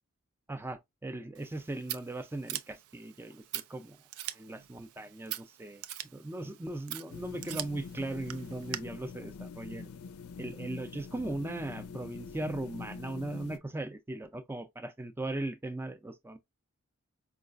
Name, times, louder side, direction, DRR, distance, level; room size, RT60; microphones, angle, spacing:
voice 1, 0.5-4.0 4.3-5.8 6.1-9.9 10.4-16.4, right 2 dB, 10° right, 0.4 m, -38 dB
Scissors, 1.3-8.8, right 13 dB, 85° right, 0.4 m, -43 dB
sound 1, 7.1-13.6, left 5 dB, 85° left, 0.4 m, -45 dB
4.7 x 2.4 x 2.4 m
head